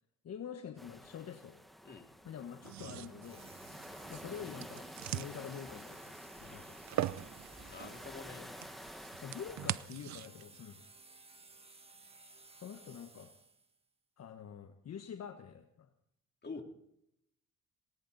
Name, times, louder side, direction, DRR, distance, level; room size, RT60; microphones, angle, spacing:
voice 1, 0.2-1.6 2.2-3.4 4.1-6.2 6.4-6.8 9.2-10.8 12.5-13.3 14.2-15.9, left 8 dB, 55° left, 6 dB, 1.3 m, -46 dB
sound 1, 0.8-9.9, equal, ahead, 1.5 m, -50 dB
sound 2, 2.6-10.6, right 13 dB, 65° right, 0.6 m, -43 dB
sound 3, 3.2-13.8, right 3 dB, 20° right, 1.8 m, -58 dB
voice 2, 7.7-8.6 16.4-16.6, left 4 dB, 35° left, 4 dB, 2.8 m, -46 dB
19.0 x 18.5 x 4.1 m, 0.78 s
cardioid pair, 90°, 30 cm